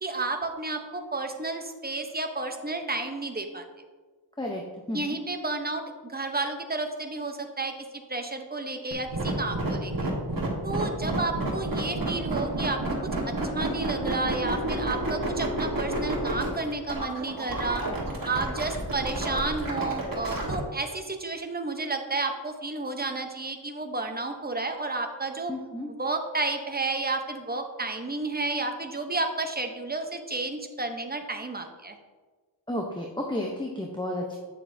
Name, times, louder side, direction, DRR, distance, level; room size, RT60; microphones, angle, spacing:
voice 1, 0.0-3.6 4.9-9.9 10.6-13.0 13.3-17.8 18.2-25.5 26.0-32.0, right 3 dB, 20° right, 5 dB, 0.8 m, -31 dB
voice 2, 4.9-5.2 25.5-25.9 32.7-34.4, left 1 dB, 10° left, 0 dB, 0.8 m, -32 dB
sound 1, 8.9-20.5, right 2 dB, 45° right, 1.6 m, -30 dB
8.4 x 6.7 x 2.7 m, 1.4 s
wide cardioid pair, 50°, 45 cm